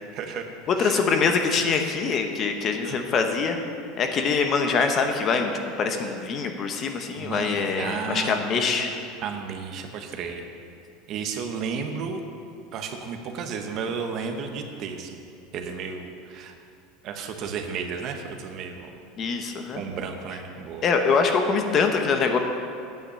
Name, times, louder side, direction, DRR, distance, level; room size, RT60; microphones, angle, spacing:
voice 1, 0.1-0.5 0.7-1.0 2.8-3.0 7.2-8.8 9.2-10.4 11.1-12.2 12.7-15.3 15.5-16.5 17.0-18.9 19.7-20.9, right 6 dB, 40° right, 4 dB, 1.0 m, -33 dB
voice 2, 0.7-3.6 4.0-5.5 5.8-8.9 19.2-19.8 20.8-22.4, left 5 dB, 30° left, 5 dB, 0.9 m, -24 dB
9.2 x 5.8 x 8.2 m, 2.6 s
supercardioid pair, 150°, 0 cm